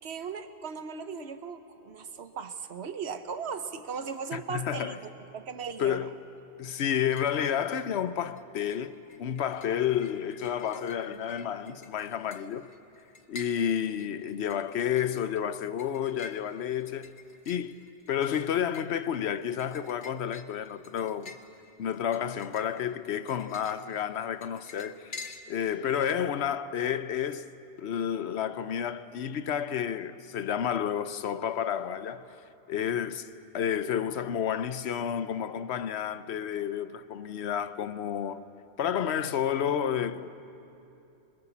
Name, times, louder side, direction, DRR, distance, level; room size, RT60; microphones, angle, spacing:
voice 1, 0.0-6.1 10.7-11.3 25.8-26.3, right 6 dB, 80° right, 1.3 m, -38 dB
voice 2, 4.3-5.0 5.8-6.1 6.6-12.7 13.3-17.2 17.5-21.4 21.8-27.5 27.8-32.4 32.7-33.3 33.5-38.5 38.8-40.3, left 9 dB, 85° left, 1.0 m, -31 dB
sound 1, 6.9-7.4 7.7-8.4 8.7-25.8, left 3 dB, 50° left, 1.1 m, -49 dB
24.5 x 21.5 x 7.2 m
omnidirectional pair, 1.1 m